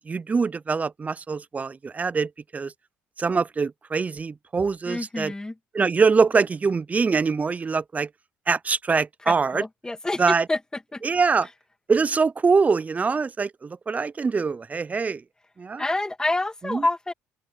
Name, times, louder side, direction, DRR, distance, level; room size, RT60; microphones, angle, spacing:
voice 1, 0.0-2.7 3.2-5.3 5.7-8.1 8.5-9.6 10.2-10.5 11.0-11.5 11.9-15.2 15.6-15.8 16.7-16.8, right 5 dB, 30° right, 0.8 m, -23 dB
voice 2, 4.9-5.5 9.3-10.6 10.9-11.0 15.8-17.1, left 2 dB, 15° left, 2.1 m, -27 dB
open air
supercardioid pair, 70°, 5 cm